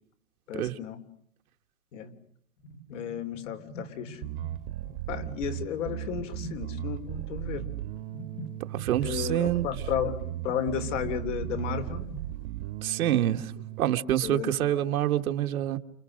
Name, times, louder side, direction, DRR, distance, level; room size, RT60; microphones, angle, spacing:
voice 1, 0.5-1.0 1.9-2.1 2.9-4.2 5.1-7.7 9.0-12.0 14.2-14.8, left 8 dB, 60° left, 3.6 m, -33 dB
sound 1, 2.6-12.7, right 1 dB, 35° left, 1.8 m, -46 dB
Bass guitar, 4.2-13.8, right 14 dB, 45° right, 1.3 m, -37 dB
voice 2, 8.7-9.7 12.8-13.5 13.8-15.8, right 12 dB, 85° right, 1.8 m, -26 dB
30.0 x 29.0 x 6.5 m
supercardioid pair, 165°, 42 cm